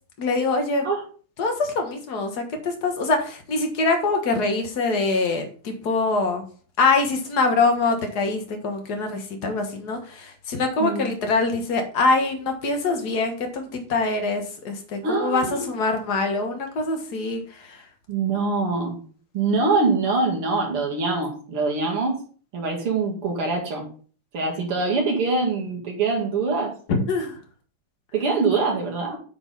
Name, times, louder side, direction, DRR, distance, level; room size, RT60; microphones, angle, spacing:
voice 1, 0.2-0.9 1.4-6.4 6.8-17.8 26.9-27.4, left 3 dB, 50° left, 4 dB, 1.9 m, -24 dB
voice 2, 15.0-15.7 18.1-19.0 19.3-22.2 22.5-23.9 24.3-26.7 28.1-29.2, right 3 dB, 85° right, -1 dB, 3.3 m, -24 dB
8.8 x 4.4 x 5.4 m, 0.41 s
omnidirectional pair, 2.4 m